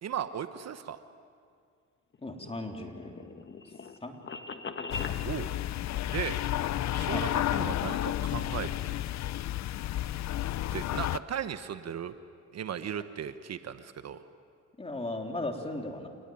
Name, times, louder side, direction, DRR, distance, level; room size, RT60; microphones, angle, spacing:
voice 1, 0.0-1.0 5.2-5.5 6.1-6.4 6.9-8.7 10.7-12.1 12.5-14.2, right 9 dB, 60° right, 10 dB, 1.1 m, -36 dB
sound 1, 2.1-5.2, left 4 dB, 40° left, 1.5 m, -41 dB
voice 2, 2.2-3.3 4.0-4.1 5.1-5.2 7.1-7.4 14.8-16.1, left 2 dB, 20° left, 3 dB, 3.5 m, -37 dB
sound 2, 4.9-11.2, left 13 dB, 65° left, 0.6 m, -31 dB
28.5 x 19.5 x 9.4 m, 2.2 s
cardioid pair, 90°, 30 cm